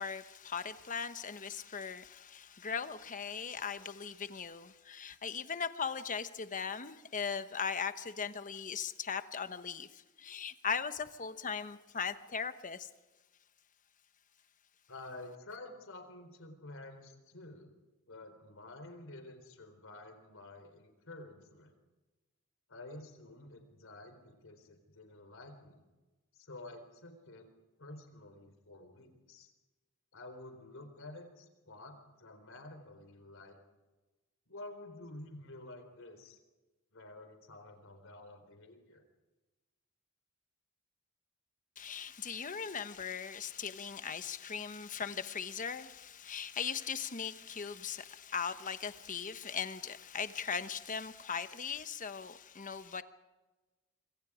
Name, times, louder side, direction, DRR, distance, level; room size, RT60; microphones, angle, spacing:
voice 1, 0.0-12.9 41.8-53.0, left 6 dB, 35° left, 1.1 m, -39 dB
voice 2, 14.9-17.7 18.1-21.7 22.7-25.8 26.3-27.5 27.8-29.5 30.1-33.6 34.5-36.4 36.9-39.0, left 2 dB, 60° left, 4.1 m, -50 dB
26.5 x 25.0 x 5.0 m
head